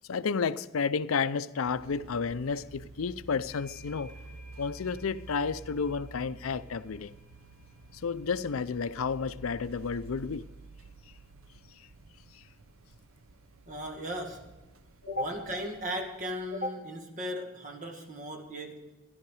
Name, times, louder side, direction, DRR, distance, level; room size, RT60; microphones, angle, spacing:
voice 1, 0.1-4.1 4.6-7.1 7.9-10.5 12.3-12.4, left 5 dB, 85° left, 0.5 m, -31 dB
sound 1, 1.6-16.5, right 3 dB, 85° right, 0.7 m, -51 dB
sound 2, 2.5-2.8 3.1-10.4, left 2 dB, 15° left, 3.6 m, -59 dB
voice 2, 13.7-14.5 15.1-18.9, equal, 40° right, 1.8 m, -36 dB
13.5 x 11.5 x 4.9 m
head